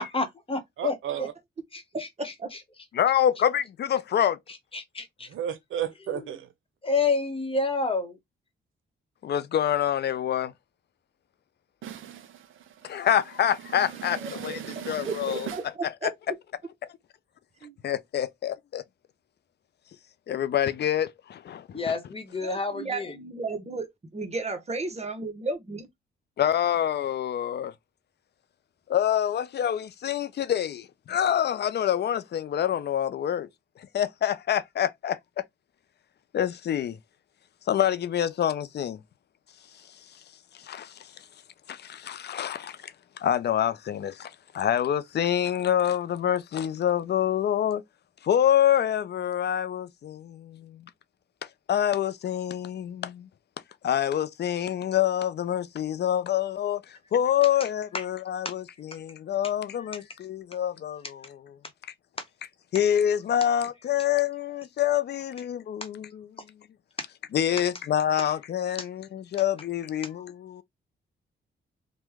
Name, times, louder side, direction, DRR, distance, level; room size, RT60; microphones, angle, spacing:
voice 1, 0.0-1.3 1.7-2.6 4.7-5.3 6.8-8.2 21.7-23.2 57.9-58.0 58.4-58.5, left 4 dB, 25° left, 0.9 m, -29 dB
voice 2, 0.8-1.3 5.3-6.5 11.8-13.1 13.6-15.6, right 10 dB, 80° right, 0.6 m, -35 dB
voice 3, 2.2-2.5 14.2-14.6 15.0-15.6 16.0-16.1 17.6-17.8 22.4-23.9 24.1-25.9, right 3 dB, 30° right, 0.9 m, -34 dB
voice 4, 2.9-4.4 9.2-10.5 12.8-14.6 14.9-15.5 16.0-16.1 17.8-18.8 20.3-21.8 26.4-27.7 28.9-33.5 33.8-35.4 36.3-37.0 37.7-39.0 40.6-41.1 41.7-47.8 48.2-50.9 51.7-53.3 53.8-61.4 62.7-66.3 67.3-70.6, left 10 dB, 55° left, 0.4 m, -26 dB
3.0 x 2.2 x 3.4 m
cardioid pair, 80°, 20 cm